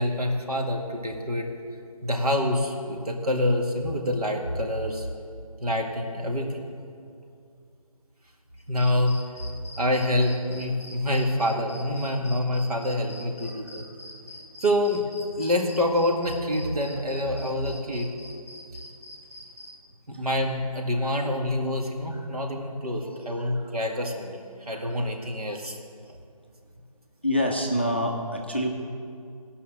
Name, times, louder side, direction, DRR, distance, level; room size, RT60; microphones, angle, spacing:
voice 1, 0.0-1.5 2.0-5.1 5.6-6.6 8.7-9.2 9.8-13.8 14.6-18.1 20.1-25.8, left 1 dB, 80° right, 1 dB, 2.0 m, -26 dB
sound 1, 8.6-19.7, left 1 dB, 45° right, 2.1 m, -44 dB
voice 2, 13.5-13.8 22.1-22.2 23.4-23.6 24.7-25.1 27.2-28.7, left 1 dB, 20° left, 1 dB, 0.5 m, -28 dB
16.0 x 5.6 x 7.8 m, 2.4 s
figure-of-eight pair, 170°, 19 cm